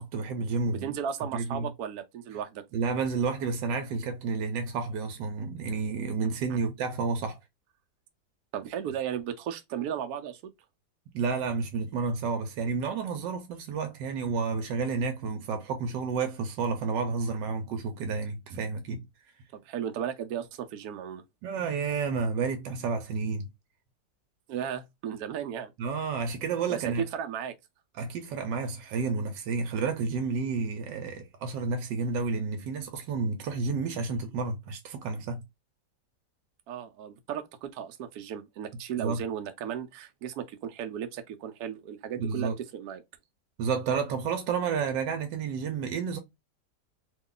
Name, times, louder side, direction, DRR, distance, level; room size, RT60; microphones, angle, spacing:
voice 1, 0.0-1.0 1.3-1.7 2.7-7.4 11.1-19.0 21.4-23.5 25.8-27.0 27.9-35.4 39.0-39.2 42.2-42.6 43.6-46.2, right 5 dB, 85° right, 1.3 m, -30 dB
voice 2, 0.7-2.6 6.5-6.6 8.5-10.5 19.5-21.2 24.5-25.7 26.7-26.8 27.1-27.5 36.7-43.0, right 9 dB, 70° right, 1.0 m, -35 dB
3.0 x 2.2 x 3.7 m
omnidirectional pair, 1.9 m